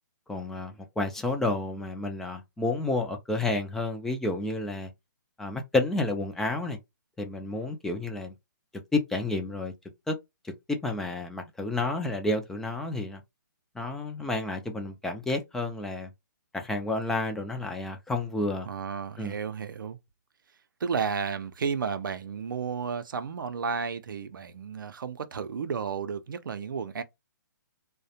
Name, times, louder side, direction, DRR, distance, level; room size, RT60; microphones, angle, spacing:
voice 1, 0.3-4.9 5.4-6.8 7.2-8.3 8.9-9.7 10.1-10.2 10.7-13.2 13.8-16.1 16.5-18.7 19.2-19.3, left 2 dB, 5° left, 0.3 m, -30 dB
voice 2, 18.7-20.0 20.8-27.0, right 6 dB, 75° right, 0.5 m, -32 dB
2.4 x 2.1 x 2.7 m
hypercardioid pair, 145°, 11 cm